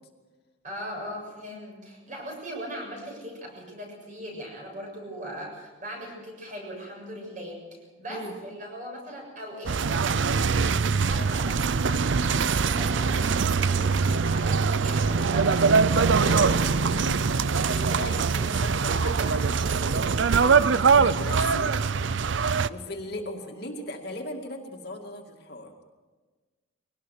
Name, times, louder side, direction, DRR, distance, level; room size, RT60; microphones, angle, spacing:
voice 1, 0.6-16.6, equal, 40° right, 0 dB, 7.2 m, -40 dB
sound 1, 9.7-22.7, right 5 dB, 70° right, 0.6 m, -23 dB
voice 2, 15.7-21.7 22.7-25.8, left 1 dB, 50° left, 1 dB, 2.3 m, -38 dB
23.0 x 18.0 x 6.6 m, 1.3 s
head